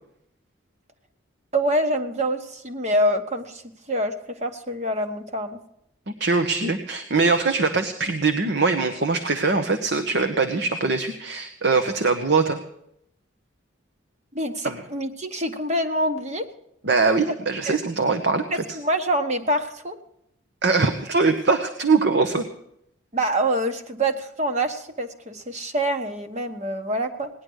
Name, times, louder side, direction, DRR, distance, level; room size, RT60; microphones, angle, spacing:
voice 1, 1.5-3.6 3.9-5.6 14.3-16.5 17.7-17.8 18.5-20.0 23.1-27.3, right 1 dB, 35° right, 6 dB, 1.4 m, -26 dB
voice 2, 6.1-12.6 14.6-14.8 16.8-18.6 20.6-22.5, right 4 dB, 60° right, 7 dB, 1.0 m, -22 dB
18.5 x 10.5 x 6.4 m, 0.74 s
head